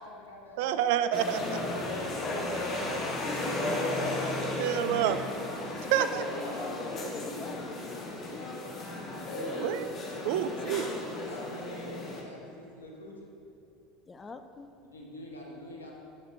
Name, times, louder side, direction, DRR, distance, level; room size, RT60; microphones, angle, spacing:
voice 1, 0.0-0.9 9.2-9.7 10.0-10.4 10.7-13.1 14.9-15.9, left 1 dB, 90° left, -2 dB, 1.0 m, -45 dB
voice 2, 0.6-1.6 4.6-5.2 5.9-6.2 9.6-9.8 10.2-10.9, right 10 dB, 65° right, 11 dB, 0.3 m, -28 dB
sound 1, 1.1-12.2, left 2 dB, 40° left, 1.3 m, -34 dB
voice 3, 2.0-3.7 5.7-6.0 6.5-8.6 9.0-9.2 14.1-14.7, left 3 dB, 25° left, 8 dB, 0.4 m, -45 dB
9.4 x 6.0 x 2.6 m, 2.8 s
hypercardioid pair, 75°, 0 cm